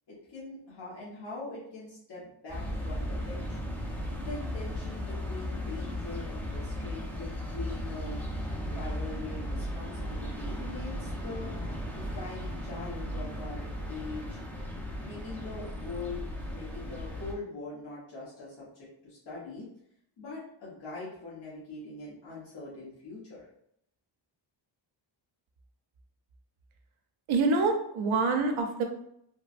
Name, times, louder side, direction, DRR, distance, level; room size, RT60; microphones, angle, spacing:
voice 1, 0.1-3.6 4.1-8.2 8.7-11.5 11.9-14.4 15.0-19.6 20.2-23.5, left 3 dB, 55° left, -8 dB, 1.2 m, -42 dB
sound 1, 2.5-17.3, equal, 5° left, 0.5 m, -36 dB
voice 2, 27.3-28.8, right 3 dB, 75° right, 4 dB, 0.7 m, -26 dB
3.3 x 2.2 x 2.5 m, 0.72 s
cardioid pair, 95°, 48 cm